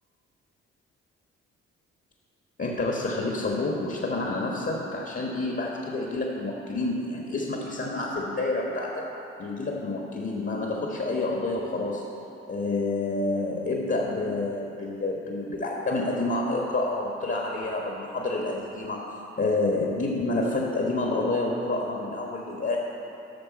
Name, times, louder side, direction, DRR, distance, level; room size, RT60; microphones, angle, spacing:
voice 1, 2.6-9.1 9.4-12.0 12.5-19.1 19.4-22.8, left 2 dB, 35° left, -1 dB, 1.5 m, -28 dB
12.0 x 6.6 x 4.2 m, 2.9 s
hypercardioid pair, 40°, 34 cm